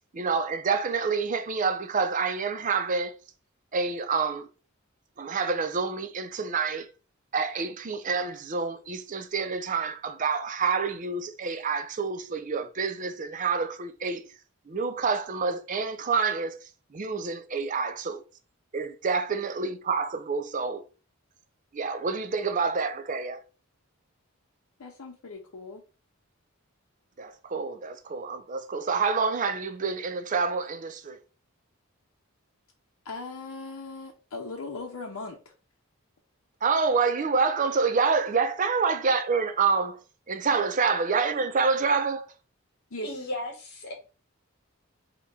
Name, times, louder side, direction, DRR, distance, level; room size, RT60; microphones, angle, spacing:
voice 1, 0.1-3.1 3.7-4.5 5.2-6.9 7.3-14.2 14.7-16.6 16.9-18.2 18.7-20.8 21.7-23.4 27.2-31.2 36.6-40.0 40.3-42.3, right 5 dB, 35° right, 0.5 m, -27 dB
voice 2, 24.8-25.8 33.0-35.4 40.5-40.6 42.9-43.3, left 3 dB, 75° left, 0.7 m, -39 dB
voice 3, 43.0-43.9, left 1 dB, 50° left, 1.4 m, -35 dB
3.7 x 2.9 x 4.0 m
head